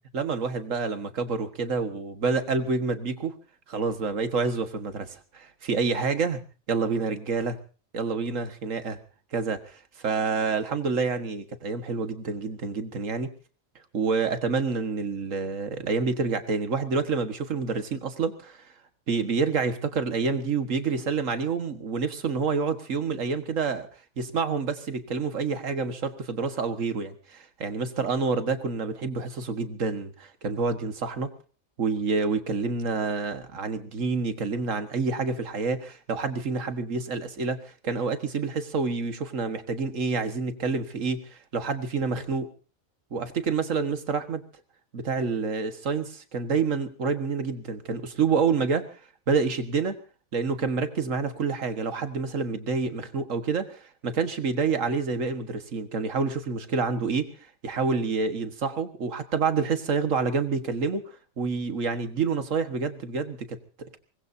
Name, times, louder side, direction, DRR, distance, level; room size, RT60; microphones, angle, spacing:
voice 1, 0.1-3.3 3.7-6.4 6.7-7.6 7.9-9.0 9.3-13.3 13.9-18.7 19.1-23.9 24.2-31.3 31.8-42.5 43.1-44.4 44.9-49.0 49.3-49.9 50.3-57.3 57.6-64.0, right 4 dB, 70° right, 9 dB, 1.9 m, -28 dB
25.0 x 20.5 x 2.7 m, 0.36 s
omnidirectional pair, 1.4 m